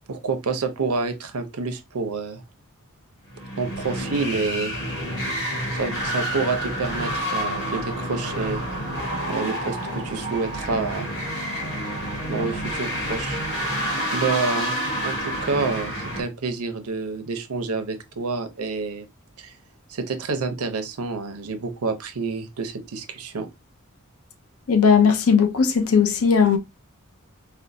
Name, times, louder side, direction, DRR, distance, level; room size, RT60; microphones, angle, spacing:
voice 1, 0.1-2.4 3.6-4.8 5.7-8.6 9.3-11.1 12.3-13.4 14.1-19.1 19.4-19.5 19.9-23.5, right 4 dB, 85° right, 0.7 m, -28 dB
sound 1, 3.3-16.2, equal, 55° left, 1.1 m, -29 dB
voice 2, 24.7-26.6, left 6 dB, 75° left, 0.6 m, -17 dB
4.3 x 2.1 x 2.6 m
head